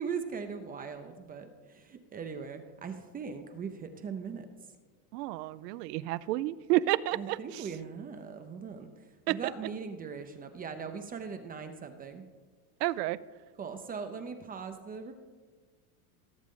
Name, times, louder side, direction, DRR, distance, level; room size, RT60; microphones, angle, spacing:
voice 1, 0.0-4.5 7.1-12.3 13.6-15.2, right 6 dB, 20° right, 7 dB, 0.5 m, -40 dB
voice 2, 5.1-7.4 9.3-9.4 12.8-13.2, right 16 dB, 80° right, 19 dB, 0.5 m, -30 dB
17.0 x 7.3 x 3.7 m, 1.4 s
supercardioid pair, 125°, 47 cm